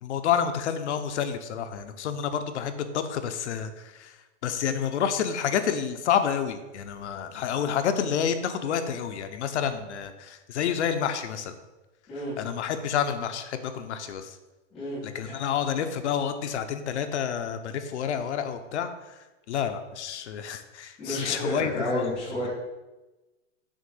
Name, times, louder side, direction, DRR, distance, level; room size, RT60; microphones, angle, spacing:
voice 1, 0.0-4.2 4.4-11.6 12.4-14.4 15.0-19.2 19.5-22.1, left 8 dB, 65° left, 9 dB, 0.7 m, -29 dB
voice 2, 14.7-15.3 21.0-22.5, equal, 5° left, -10 dB, 0.3 m, -31 dB
6.4 x 3.4 x 5.4 m, 1.1 s
hypercardioid pair, 165°, 36 cm